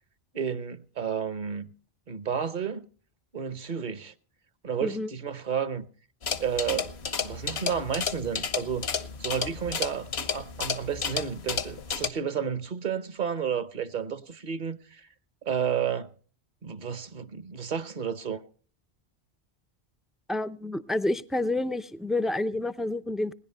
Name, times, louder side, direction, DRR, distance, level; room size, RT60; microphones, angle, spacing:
voice 1, 0.3-1.7 2.1-2.9 3.3-4.1 4.6-5.9 6.4-6.9 7.2-8.9 9.2-15.1 15.4-16.1 16.6-18.4, right 7 dB, 50° right, 0.9 m, -31 dB
sound 1, 6.2-12.1, left 6 dB, 85° left, 1.3 m, -32 dB
voice 2, 20.3-23.3, left 2 dB, ahead, 0.3 m, -29 dB
19.5 x 11.0 x 5.4 m
omnidirectional pair, 1.1 m